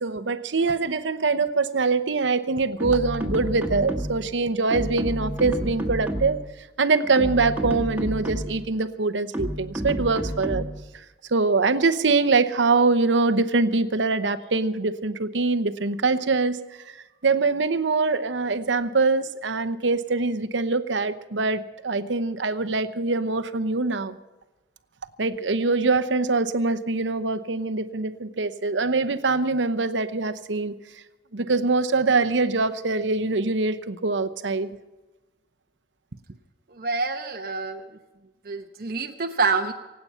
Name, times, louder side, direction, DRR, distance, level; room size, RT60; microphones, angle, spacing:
voice 1, 0.0-6.4 6.8-10.7 11.3-16.6 17.2-24.2 25.2-30.7 31.3-34.7, right 3 dB, 85° right, 12 dB, 0.9 m, -23 dB
sound 1, 2.8-4.3 4.7-6.5 7.0-8.7 9.3-10.9, equal, 10° right, 1.7 m, -30 dB
voice 2, 36.7-37.9 38.4-39.7, right 4 dB, 55° right, 4 dB, 0.9 m, -27 dB
26.0 x 8.7 x 5.7 m, 1.1 s
head